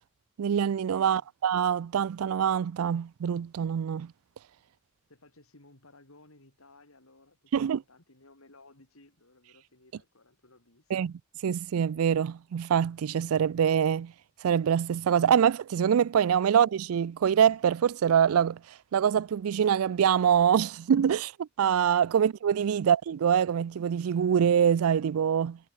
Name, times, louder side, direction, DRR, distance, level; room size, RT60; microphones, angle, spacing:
voice 1, 0.4-4.1 7.5-7.8 10.9-11.1 11.4-14.1 14.4-18.6 18.9-25.6, right 8 dB, 85° right, 0.4 m, -25 dB
voice 2, 5.1-11.1, left 2 dB, 80° left, 5.1 m, -58 dB
head